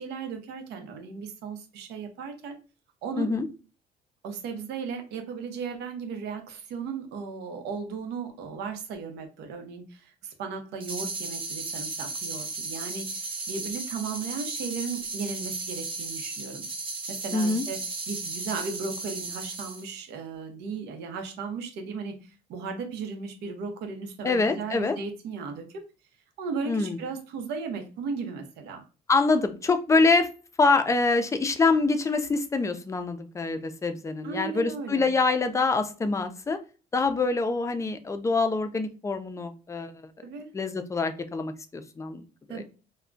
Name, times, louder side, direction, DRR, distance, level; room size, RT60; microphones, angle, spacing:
voice 1, 0.0-2.6 3.0-3.3 4.2-16.7 17.1-17.8 18.1-25.8 26.4-28.8 34.2-35.1 40.2-40.5 42.5-42.6, right 5 dB, 85° right, 5 dB, 0.7 m, -36 dB
sound 1, 10.8-20.0, right 3 dB, 30° right, 0.7 m, -35 dB
voice 2, 17.3-17.6 24.2-25.0 26.7-27.0 29.1-30.3 30.6-36.6 36.9-39.9 40.5-42.6, left 3 dB, 20° left, 8 dB, 0.4 m, -25 dB
2.2 x 2.1 x 3.7 m, 0.35 s
cardioid pair, 110°, 17 cm